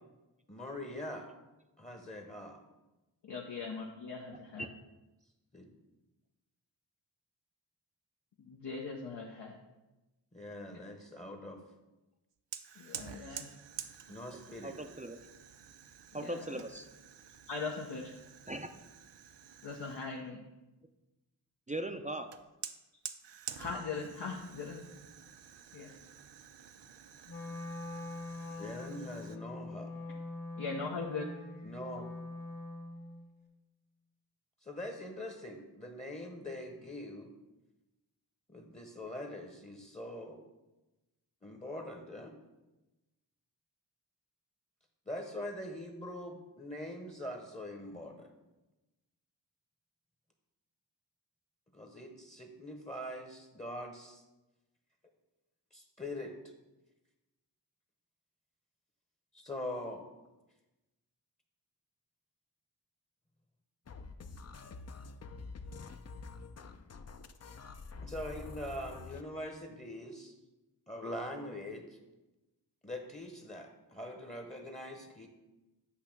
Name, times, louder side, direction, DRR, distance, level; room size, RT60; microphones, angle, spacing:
voice 1, 0.5-1.3 1.8-2.6 5.5-5.7 10.3-11.6 13.1-13.4 14.1-14.8 28.6-29.9 31.6-32.1 34.6-37.3 38.5-40.4 41.4-42.3 45.1-48.3 51.7-54.2 55.7-56.3 59.3-60.1 68.0-70.4 70.9-72.0 72.8-75.3, left 1 dB, 15° left, 3 dB, 0.9 m, -43 dB
voice 2, 3.2-4.6 8.4-9.6 12.8-13.5 16.1-16.6 17.5-18.1 19.6-20.4 23.6-24.8 25.7-25.9 30.6-31.2, left 4 dB, 75° left, -1 dB, 0.8 m, -40 dB
Fire, 12.5-20.2 22.3-29.4, right 9 dB, 75° right, 0.5 m, -49 dB
voice 3, 14.6-15.2 16.1-16.9 18.5-18.7 21.7-22.3, right 1 dB, 20° right, 6 dB, 0.4 m, -39 dB
Wind instrument woodwind instrument, 27.3-33.3, left 2 dB, 55° left, 1.5 m, -43 dB
sound 1, 63.9-69.2, left 4 dB, 40° left, 0.5 m, -47 dB
8.4 x 2.8 x 5.9 m, 1.1 s
cardioid pair, 40°, 43 cm